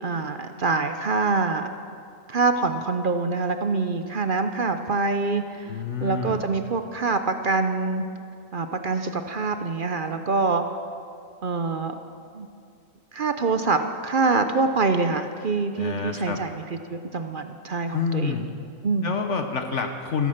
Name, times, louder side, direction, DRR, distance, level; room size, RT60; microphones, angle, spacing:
voice 1, 0.0-1.7 2.3-5.7 6.0-8.0 8.5-10.6 11.4-11.9 12.3-12.5 13.1-16.6 16.9-18.4 18.8-19.2, right 4 dB, 50° right, 8 dB, 0.6 m, -25 dB
voice 2, 5.7-6.4 15.8-16.4 17.9-18.5 19.0-20.3, left 5 dB, 55° left, 5 dB, 1.2 m, -28 dB
15.5 x 13.0 x 6.5 m, 2.4 s
omnidirectional pair, 1.5 m